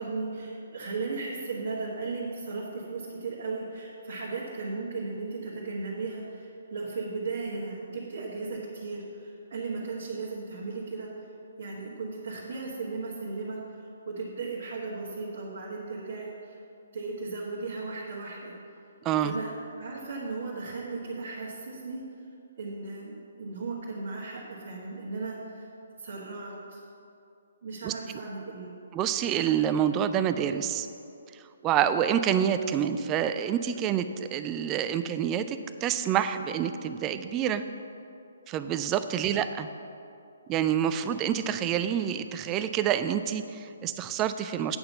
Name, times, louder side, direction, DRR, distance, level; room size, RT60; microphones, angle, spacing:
voice 1, 0.0-11.1 11.6-16.6 16.9-18.5 19.2-22.0 22.6-25.7 26.0-26.8 27.6-28.7 39.2-39.3, right 3 dB, 45° right, -6 dB, 1.5 m, -36 dB
voice 2, 19.0-19.4 27.8-28.2 28.9-30.9 31.6-37.6 38.5-39.7 40.5-44.8, right 9 dB, 20° right, 10 dB, 0.4 m, -27 dB
8.7 x 5.6 x 6.8 m, 2.6 s
figure-of-eight pair, 135°, 0 cm